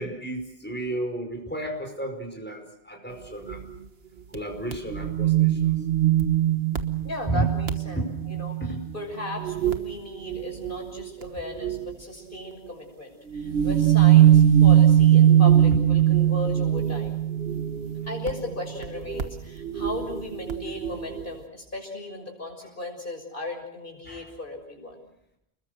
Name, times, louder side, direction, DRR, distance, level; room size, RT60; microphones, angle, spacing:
voice 1, 0.0-3.6 4.3-5.7 7.3-7.5 8.0-8.2 8.6-8.8 18.2-18.3 24.1-24.2, right 1 dB, 10° left, 2 dB, 5.2 m, -32 dB
sound 1, 3.5-3.6 4.3-4.4 4.7-8.9 9.3-9.9 10.2-11.9 13.3-21.3, right 11 dB, 70° right, 1.5 m, -21 dB
voice 2, 7.0-8.6 8.9-17.2 18.1-25.0, left 2 dB, 55° left, 2 dB, 6.8 m, -36 dB
29.5 x 21.0 x 6.7 m, 0.81 s
omnidirectional pair, 1.1 m